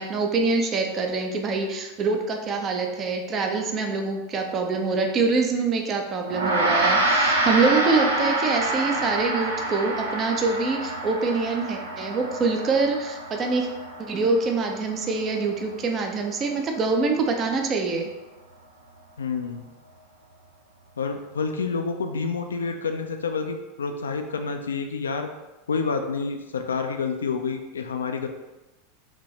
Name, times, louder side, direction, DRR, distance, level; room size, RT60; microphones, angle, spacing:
voice 1, 0.0-13.7 14.0-18.1, right 4 dB, 30° right, 3 dB, 0.6 m, -25 dB
Gong, 6.3-15.9, right 2 dB, 75° right, 0.6 m, -27 dB
voice 2, 19.2-19.6 21.0-25.3 25.7-28.3, left 5 dB, 75° left, 6 dB, 0.4 m, -28 dB
5.1 x 2.7 x 3.3 m, 1.1 s
figure-of-eight pair, 85°, 0 cm